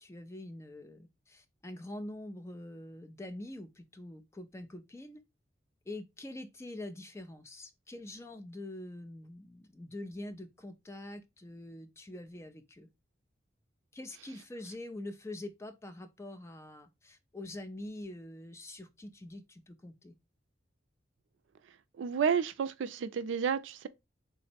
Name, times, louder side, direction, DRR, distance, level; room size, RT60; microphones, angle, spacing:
voice 1, 0.0-5.2 5.9-12.9 13.9-20.1, left 1 dB, 15° left, 0.3 m, -45 dB
voice 2, 22.0-23.9, right 7 dB, 80° right, 0.3 m, -31 dB
3.6 x 2.0 x 4.1 m
head